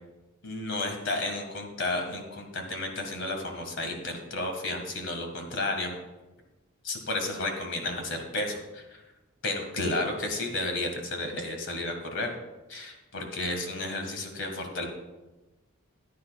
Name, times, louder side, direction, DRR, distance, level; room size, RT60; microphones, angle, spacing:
voice 1, 0.4-5.9 6.8-8.8 9.4-12.3 12.7-14.8, left 2 dB, 60° left, 4 dB, 1.8 m, -32 dB
14.0 x 9.5 x 2.4 m, 1.1 s
head